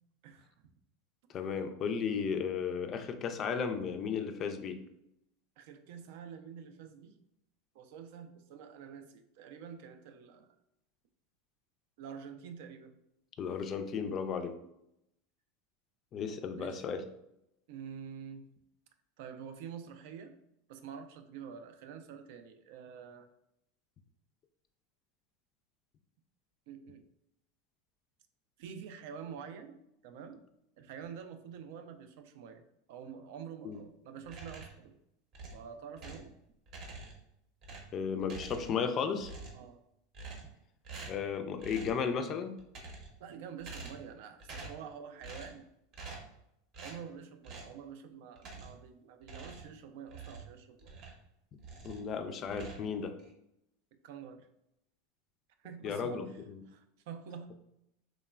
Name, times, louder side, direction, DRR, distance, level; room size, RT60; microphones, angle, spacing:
voice 1, 0.2-0.5 5.6-7.2 7.7-10.5 12.0-13.0 16.6-16.8 17.7-18.5 19.2-20.4 20.7-23.3 26.7-27.0 28.6-30.4 30.8-35.0 35.5-36.3 39.5-39.8 43.2-45.6 46.8-51.0 54.0-54.5 55.6-56.4 56.7-57.5, right 7 dB, 70° right, 7 dB, 0.3 m, -47 dB
voice 2, 1.3-4.8 13.4-14.6 16.1-17.0 33.6-33.8 37.9-39.3 41.1-42.6 51.8-53.1 55.8-56.6, left 6 dB, 40° left, 8 dB, 0.3 m, -34 dB
sound 1, 34.2-34.9 35.3-36.3 36.7-37.3 37.6-38.9 39.2-39.7 40.1-40.6 40.8-41.3 41.6-42.0 42.6-43.2 43.6-44.1 44.4-44.9 45.2-45.6 45.9-46.4 46.7-47.0 47.4-47.8 48.4-48.9 49.2-51.3 51.6-52.1 52.4-53.3, right 3 dB, 50° right, 0.7 m, -47 dB
3.0 x 2.1 x 2.3 m, 0.81 s
hypercardioid pair, 110°, 0 cm